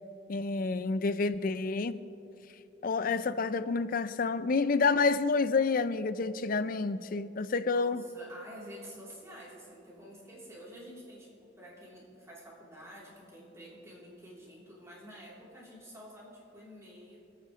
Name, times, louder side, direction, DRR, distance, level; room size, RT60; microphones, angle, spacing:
voice 1, 0.3-2.0 2.8-8.0, left 4 dB, 50° left, 14 dB, 0.5 m, -29 dB
voice 2, 7.7-17.2, equal, 15° right, -7 dB, 3.6 m, -49 dB
27.0 x 9.1 x 3.3 m, 2.7 s
head